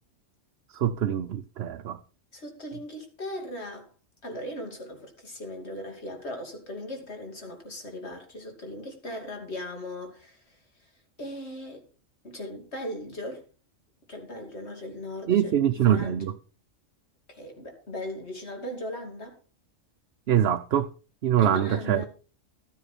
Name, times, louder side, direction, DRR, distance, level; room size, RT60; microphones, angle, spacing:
voice 1, 0.7-2.0 15.3-16.3 20.3-20.9 21.2-22.0, right 10 dB, 60° right, 0.9 m, -24 dB
voice 2, 2.3-3.9 4.2-10.5 11.2-11.8 12.2-13.5 14.1-15.6 15.9-16.2 17.3-19.4 21.4-22.1, left 1 dB, 55° left, 2.9 m, -38 dB
13.0 x 9.7 x 4.1 m
omnidirectional pair, 1.3 m